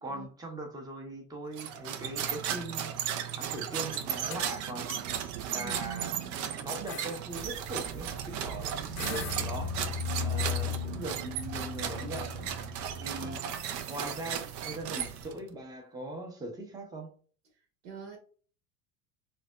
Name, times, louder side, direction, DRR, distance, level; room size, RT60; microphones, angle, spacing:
voice 1, 0.0-4.9 5.5-12.5 13.0-13.4 13.9-17.1, right 1 dB, 10° right, 0.7 m, -41 dB
sound 1, 1.5-15.5, right 9 dB, 40° right, 0.4 m, -36 dB
sound 2, 3.5-4.0 4.3-4.5 4.9-5.0 5.8-6.1 6.4-6.5 6.9-7.2 8.5-8.7 9.0-9.4, left 8 dB, 80° left, 0.7 m, -41 dB
voice 2, 5.5-6.5 13.1-13.9 17.5-18.2, right 7 dB, 60° right, 1.0 m, -45 dB
sound 3, 7.3-15.3, left 4 dB, 90° right, 0.6 m, -38 dB
4.0 x 2.1 x 2.2 m
hypercardioid pair, 90°, 48 cm